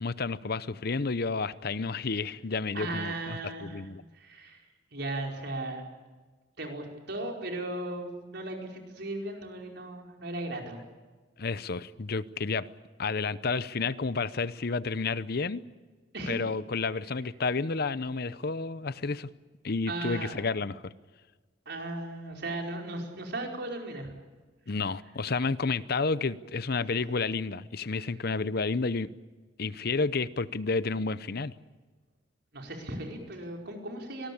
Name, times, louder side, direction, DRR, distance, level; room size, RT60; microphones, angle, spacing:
voice 1, 0.0-4.0 11.4-12.7 13.0-15.6 16.3-19.3 19.6-20.9 24.7-29.1 29.6-31.5, left 4 dB, 55° left, 16 dB, 0.8 m, -31 dB
voice 2, 2.7-3.8 4.1-4.6 4.9-5.8 6.6-10.8 16.1-16.4 19.9-20.3 21.6-24.1 24.7-24.8 28.0-28.1 32.5-34.3, right 2 dB, 60° right, 2 dB, 5.0 m, -36 dB
25.0 x 19.5 x 8.7 m, 1.3 s
head